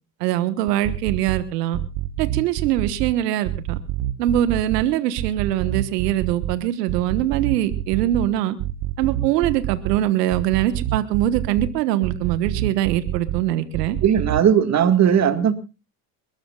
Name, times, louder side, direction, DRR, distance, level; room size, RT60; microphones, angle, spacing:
voice 1, 0.2-1.8 2.2-3.8 4.2-8.6 9.0-14.0, right 13 dB, 85° right, 12 dB, 1.4 m, -22 dB
sound 1, 0.7-1.4 1.7-3.1 3.5-4.8 5.2-6.6 6.9-8.3 8.6-10.0 10.3-11.7 12.0-13.4 13.7-14.4, right 14 dB, 55° right, 1.3 m, -26 dB
voice 2, 14.0-15.5, right 8 dB, 35° right, 9 dB, 1.9 m, -17 dB
28.0 x 13.5 x 2.4 m, 0.31 s
supercardioid pair, 100°, 47 cm